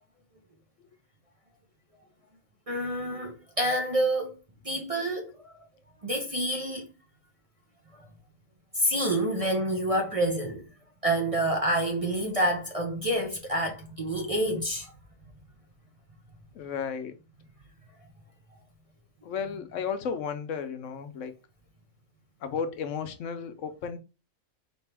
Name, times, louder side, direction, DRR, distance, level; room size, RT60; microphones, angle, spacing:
voice 1, 2.7-4.3 4.6-5.5 6.0-6.9 8.7-10.6 11.0-14.9, right 1 dB, 35° right, 0.6 m, -28 dB
voice 2, 16.5-17.1 19.2-21.4 22.4-24.0, left 6 dB, 70° left, 0.9 m, -33 dB
4.4 x 2.9 x 3.3 m
omnidirectional pair, 1.4 m